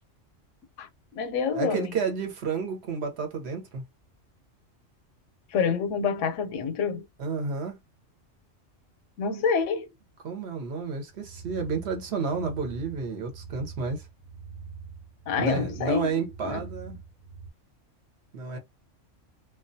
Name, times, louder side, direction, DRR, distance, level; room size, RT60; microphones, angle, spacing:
voice 1, 0.8-1.9 5.5-7.0 9.2-9.9 15.3-16.7, left 6 dB, 80° left, 0.9 m, -28 dB
voice 2, 1.5-3.8 7.2-7.8 10.2-14.1 15.4-17.0 18.3-18.6, right 5 dB, 60° right, 1.0 m, -31 dB
sound 1, 11.1-17.5, right 5 dB, 90° right, 1.0 m, -44 dB
2.4 x 2.2 x 2.6 m
omnidirectional pair, 1.3 m